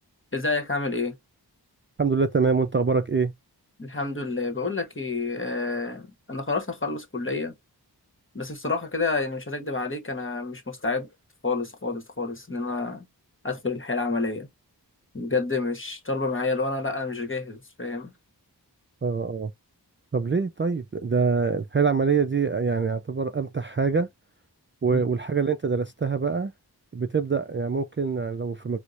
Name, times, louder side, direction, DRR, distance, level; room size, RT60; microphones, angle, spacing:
voice 1, 0.3-1.1 3.8-7.5 8.3-11.1 11.4-13.1 13.4-14.5 15.1-18.1 24.9-25.0, left 3 dB, 30° left, 1.1 m, -29 dB
voice 2, 2.0-3.3 19.0-19.5 20.1-24.1 24.8-26.5 26.9-28.8, right 5 dB, 30° right, 0.4 m, -24 dB
4.4 x 2.1 x 2.5 m
wide cardioid pair, 40°, 40 cm